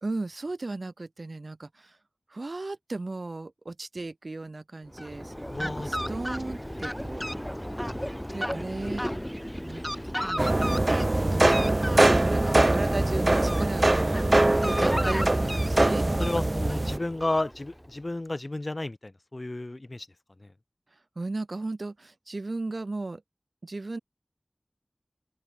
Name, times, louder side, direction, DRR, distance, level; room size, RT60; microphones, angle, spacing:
voice 1, 0.0-2.0 2.3-5.3 5.6-7.3 8.3-9.0 9.6-10.9 11.3-16.0 21.1-23.2 23.6-24.0, right 2 dB, 70° right, 1.4 m, -36 dB
Fowl, 4.9-17.9, equal, 5° left, 2.8 m, -34 dB
voice 2, 5.5-5.9 16.2-20.1 20.4-20.5, left 2 dB, 45° left, 2.7 m, -32 dB
sound 1, 10.4-17.0, right 2 dB, 45° right, 0.3 m, -23 dB
open air
wide cardioid pair, 45°, 0 cm